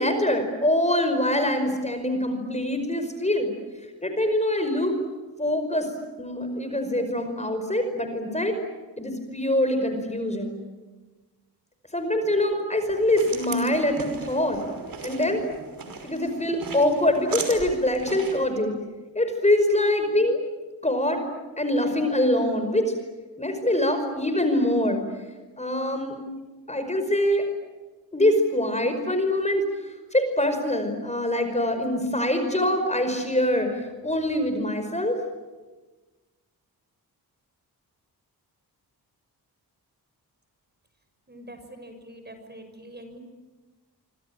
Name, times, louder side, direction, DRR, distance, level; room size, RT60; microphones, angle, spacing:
voice 1, 0.0-3.5 4.0-5.0 5.4-5.9 6.2-8.6 9.0-10.6 11.9-14.6 15.0-15.4 16.0-18.7 19.2-20.4 20.8-21.2 21.6-22.9 23.4-25.0 25.6-26.2 26.7-27.5 28.1-35.2, left 1 dB, 20° left, 7 dB, 5.2 m, -24 dB
sound 1, 12.8-18.5, right 4 dB, 60° right, 5.6 m, -38 dB
voice 2, 41.3-43.2, right 1 dB, 25° right, 7 dB, 6.6 m, -44 dB
26.0 x 25.5 x 8.9 m, 1.2 s
cardioid pair, 75°, 38 cm